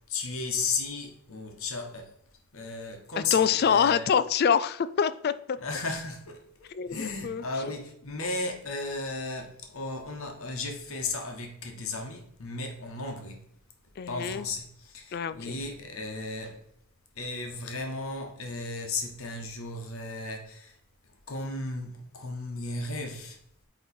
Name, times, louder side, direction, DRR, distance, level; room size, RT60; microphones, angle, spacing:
voice 1, 0.1-2.2 2.5-4.1 5.6-13.5 14.1-16.7 17.1-20.8 21.0-23.4, left 3 dB, 75° left, 1.2 m, -35 dB
voice 2, 3.2-5.6 6.7-7.4 14.0-14.4 15.1-15.6, left 7 dB, 45° left, 0.3 m, -25 dB
8.7 x 3.1 x 4.3 m
head